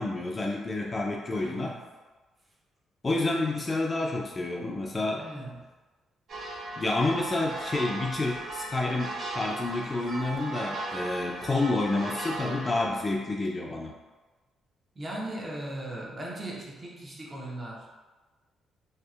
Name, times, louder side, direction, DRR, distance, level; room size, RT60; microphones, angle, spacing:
voice 1, 0.0-1.7 3.0-5.2 6.8-13.9, left 2 dB, 30° left, -1 dB, 0.3 m, -29 dB
voice 2, 1.3-1.9 5.2-5.7 14.9-17.9, right 1 dB, 30° right, -3 dB, 0.6 m, -38 dB
sound 1, 6.3-12.8, right 2 dB, 75° right, 0.9 m, -37 dB
2.6 x 2.0 x 2.3 m, 1.2 s
cardioid pair, 90°, 0 cm